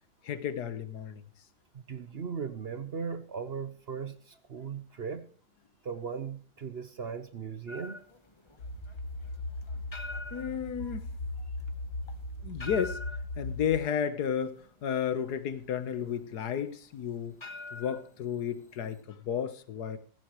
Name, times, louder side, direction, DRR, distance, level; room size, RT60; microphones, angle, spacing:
voice 1, 0.2-1.2 10.3-11.0 12.4-13.0 13.4-17.4 17.7-20.0, left 8 dB, 80° left, 1.6 m, -32 dB
voice 2, 1.7-5.3 5.8-8.0 10.8-10.9, right 6 dB, 50° right, 0.9 m, -38 dB
sound 1, 7.7-19.0, left 2 dB, 20° left, 0.9 m, -46 dB
sound 2, 8.6-13.8, left 2 dB, 65° left, 1.6 m, -38 dB
15.5 x 15.0 x 3.1 m
omnidirectional pair, 1.7 m